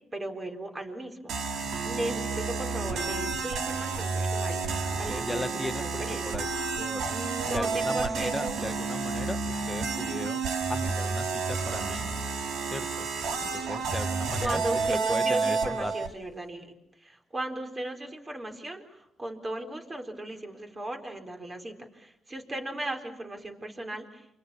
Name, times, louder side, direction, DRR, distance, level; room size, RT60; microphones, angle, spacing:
voice 1, 0.1-6.2 7.1-8.6 14.4-16.7 17.0-24.3, right 1 dB, 25° right, 5 dB, 4.3 m, -36 dB
sound 1, 1.3-16.1, right 4 dB, 75° right, 2.8 m, -30 dB
voice 2, 4.9-6.5 6.8-7.0 7.5-12.1 12.7-13.1 13.4-14.6 14.9-15.9, left 1 dB, 10° left, 10 dB, 1.3 m, -37 dB
28.5 x 27.0 x 7.0 m, 0.82 s
cardioid pair, 90°, 0 cm